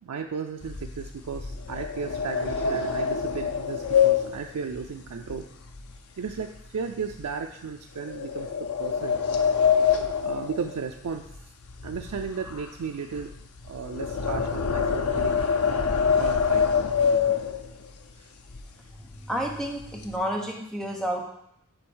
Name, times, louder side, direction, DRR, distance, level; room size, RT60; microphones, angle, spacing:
voice 1, 0.0-5.5 6.2-9.2 10.2-11.3 11.8-13.3 13.6-15.5 16.1-16.7 18.2-18.3, right 5 dB, 90° right, 4 dB, 0.4 m, -35 dB
sound 1, 0.6-6.0 6.3-6.6 7.1-7.2 8.1-11.4 11.6-17.9 18.5-18.6 18.9-19.2 19.5-20.1, left 6 dB, 80° left, 0.7 m, -26 dB
voice 2, 19.2-21.2, equal, ahead, 0 dB, 0.9 m, -30 dB
7.8 x 3.8 x 6.2 m, 0.76 s
head